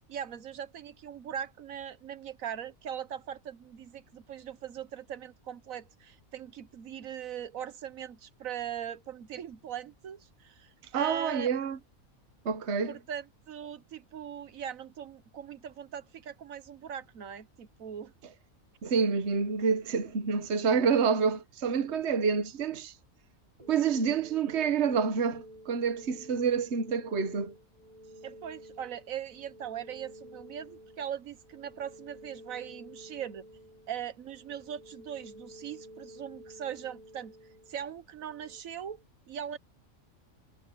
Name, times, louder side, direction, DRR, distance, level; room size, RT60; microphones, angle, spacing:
voice 1, 0.1-11.5 12.9-18.1 28.2-33.5 33.9-37.3 37.7-39.6, right 9 dB, 75° right, 1.4 m, -40 dB
voice 2, 10.9-11.8 12.4-13.0 18.8-22.9 23.7-27.5, right 6 dB, 55° right, 1.4 m, -28 dB
sound 1, 23.6-38.6, equal, 30° right, 3.6 m, -52 dB
omnidirectional pair, 1.4 m